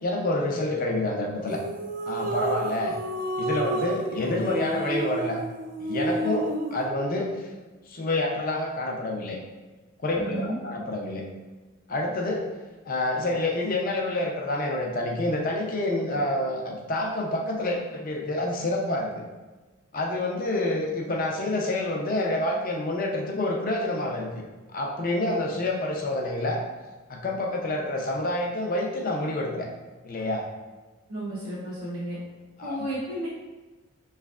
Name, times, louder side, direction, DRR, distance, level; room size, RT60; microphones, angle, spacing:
voice 1, 0.0-1.6 2.1-3.0 3.4-5.4 5.8-7.5 7.9-9.4 10.0-11.2 11.9-12.5 12.9-19.2 19.9-24.3 24.7-26.6 27.1-29.7 30.0-30.4 32.6-32.8, left 1 dB, 40° left, 1 dB, 0.5 m, -28 dB
sound 1, 1.5-6.9, right 1 dB, 40° right, 0.3 m, -31 dB
voice 2, 10.2-10.6 31.1-32.2 32.6-33.3, right 1 dB, 85° right, -8 dB, 0.9 m, -32 dB
5.6 x 3.2 x 2.4 m, 1.2 s
head